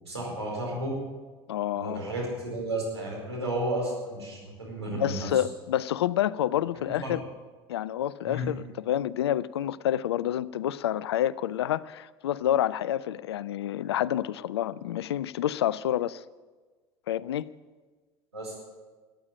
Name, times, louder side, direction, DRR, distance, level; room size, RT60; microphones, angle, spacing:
voice 1, 0.0-0.9 1.7-5.3 6.8-7.1 8.2-8.4 18.3-18.6, right 1 dB, 85° right, -3 dB, 4.8 m, -33 dB
voice 2, 1.5-2.0 5.0-7.2 7.7-16.2 17.1-17.5, left 11 dB, 70° left, 21 dB, 0.4 m, -28 dB
14.5 x 9.0 x 8.6 m, 1.4 s
figure-of-eight pair, 70°, 14 cm